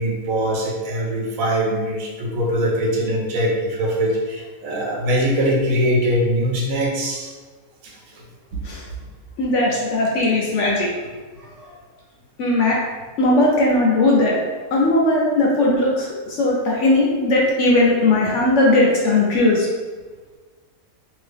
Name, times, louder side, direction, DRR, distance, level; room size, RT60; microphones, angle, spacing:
voice 1, 0.0-7.3 7.8-8.0 8.5-8.6, equal, 70° right, -1 dB, 1.0 m, -22 dB
voice 2, 9.4-10.9 12.4-12.8 13.2-14.4 14.7-19.7, left 2 dB, 65° left, -3 dB, 0.8 m, -18 dB
2.8 x 2.5 x 3.3 m, 1.4 s
omnidirectional pair, 1.6 m